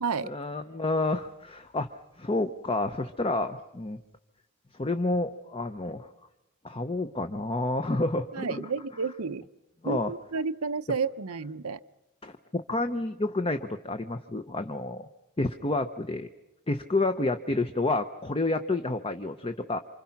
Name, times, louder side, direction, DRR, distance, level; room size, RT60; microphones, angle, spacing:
voice 1, 0.2-4.0 4.8-6.1 6.6-8.6 9.8-10.1 12.2-15.1 15.4-16.3 16.7-19.8, left 2 dB, 25° left, 8 dB, 0.8 m, -29 dB
voice 2, 8.3-9.4 9.8-11.8, right 5 dB, 90° right, 14 dB, 0.8 m, -31 dB
28.5 x 26.0 x 5.9 m, 0.96 s
head